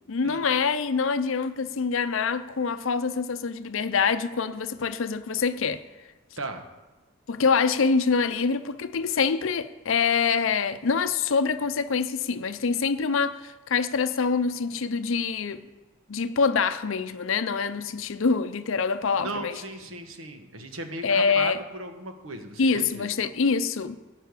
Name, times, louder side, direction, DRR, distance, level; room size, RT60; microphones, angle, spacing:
voice 1, 0.1-5.8 7.3-15.6 16.1-19.6 21.0-21.6 22.6-24.0, left 5 dB, 70° left, 0.6 m, -25 dB
voice 2, 19.2-23.1, right 2 dB, 70° right, 1.2 m, -36 dB
11.5 x 5.6 x 8.2 m
head